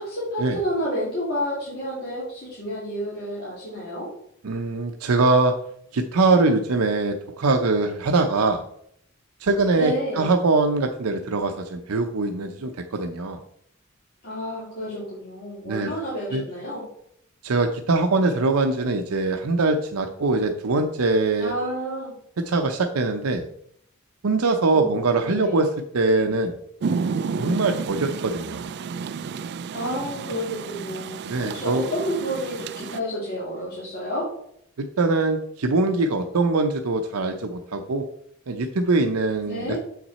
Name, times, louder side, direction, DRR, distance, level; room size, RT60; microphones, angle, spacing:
voice 1, 0.0-4.1 9.8-10.2 14.2-16.8 21.4-22.1 24.7-24.8 25.2-25.6 29.7-34.3 39.4-39.8, equal, 45° left, -8 dB, 2.5 m, -30 dB
voice 2, 4.4-5.5 5.9-8.6 9.4-13.4 15.6-15.9 16.3-16.4 17.4-21.6 22.5-23.4 24.2-25.7 25.9-26.5 27.3-28.7 31.2-31.9 35.0-38.0 38.5-39.8, right 3 dB, 85° right, 5 dB, 0.6 m, -22 dB
Rain, 26.8-33.0, right 5 dB, 50° right, 0.3 m, -31 dB
7.3 x 5.9 x 4.1 m, 0.70 s
head